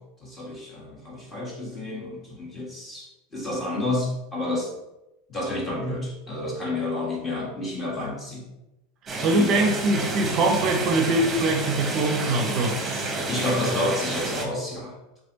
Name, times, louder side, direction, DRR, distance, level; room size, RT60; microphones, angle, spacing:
voice 1, 0.0-4.7 5.3-8.5 9.2-9.8 12.6-15.0, left 2 dB, 20° left, -3 dB, 1.6 m, -30 dB
sound 1, 9.1-14.5, right 2 dB, 20° right, 0.9 m, -30 dB
voice 2, 9.2-12.8, right 2 dB, 45° right, 4 dB, 0.6 m, -23 dB
3.6 x 3.2 x 4.0 m, 0.94 s
hypercardioid pair, 110°, 0 cm